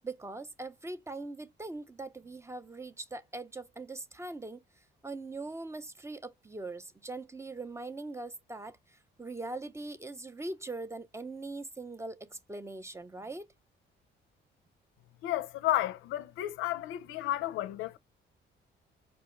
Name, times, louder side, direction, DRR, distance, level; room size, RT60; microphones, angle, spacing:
voice 1, 0.0-4.6 5.0-13.5, right 2 dB, 15° right, 0.4 m, -41 dB
voice 2, 15.2-18.0, left 14 dB, 85° left, 0.4 m, -32 dB
4.2 x 2.3 x 2.9 m
cardioid pair, 90°, 20 cm